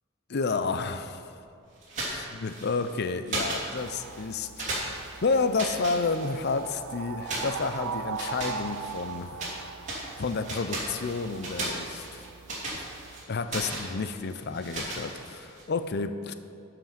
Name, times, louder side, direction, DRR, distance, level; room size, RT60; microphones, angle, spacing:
voice 1, 0.3-1.3 2.1-4.7 5.2-9.3 10.2-12.2 13.3-16.3, left 4 dB, 50° left, 10 dB, 0.5 m, -30 dB
sound 1, 1.8-2.9 3.3-4.2 4.6-6.7 7.2-9.6 9.8-15.6, right 1 dB, 35° right, 2.7 m, -36 dB
sound 2, 3.8-13.2, right 6 dB, 75° right, 0.5 m, -40 dB
12.0 x 5.9 x 5.8 m, 2.7 s
head